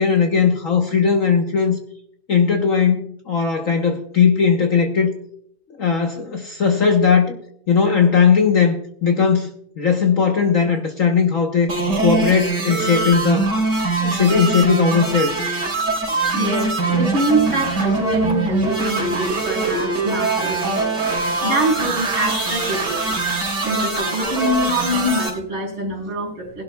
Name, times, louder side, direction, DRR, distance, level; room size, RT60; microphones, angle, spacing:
voice 1, 0.0-1.8 2.3-5.1 5.8-7.4 7.7-9.5 9.8-11.7 12.0-13.5 14.0-15.3, left 6 dB, 50° left, 3 dB, 1.2 m, -18 dB
sound 1, 11.7-25.3, right 3 dB, 50° right, 4.0 m, -22 dB
voice 2, 16.1-20.9 21.4-23.2 23.6-26.6, right 1 dB, 75° right, 3 dB, 4.8 m, -24 dB
20.0 x 12.0 x 2.3 m, 0.68 s
omnidirectional pair, 2.3 m